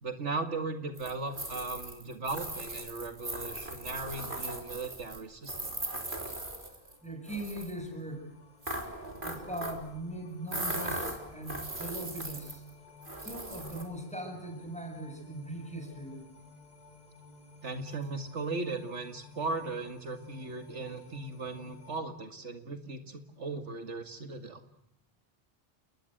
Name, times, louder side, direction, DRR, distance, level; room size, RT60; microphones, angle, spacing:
voice 1, 0.0-5.8 17.6-24.6, right 3 dB, 80° right, 7 dB, 2.5 m, -37 dB
sound 1, 1.0-7.0 7.3-7.7 8.6-9.9 10.5-12.7 13.0-13.8, right 1 dB, 45° right, 4.1 m, -38 dB
sound 2, 6.3-22.0, left 2 dB, 35° left, 2.4 m, -55 dB
voice 2, 7.0-8.3 9.2-12.6 13.2-16.2, right 1 dB, 5° left, 4 dB, 7.4 m, -40 dB
30.0 x 20.5 x 7.9 m, 0.75 s
omnidirectional pair, 1.2 m